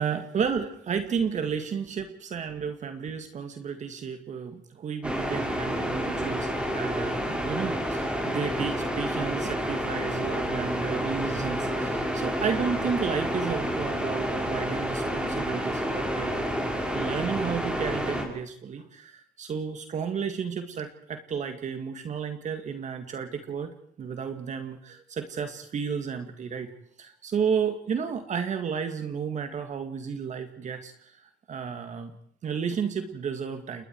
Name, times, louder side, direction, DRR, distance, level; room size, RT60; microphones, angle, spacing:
voice 1, 0.0-16.5 16.9-26.7 27.0-31.1 31.5-32.1 32.4-33.8, right 6 dB, 45° right, 7 dB, 2.1 m, -32 dB
sound 1, 5.0-18.2, equal, 5° right, 5.8 m, -29 dB
29.5 x 21.5 x 4.8 m, 0.65 s
cardioid pair, 110°, 17 cm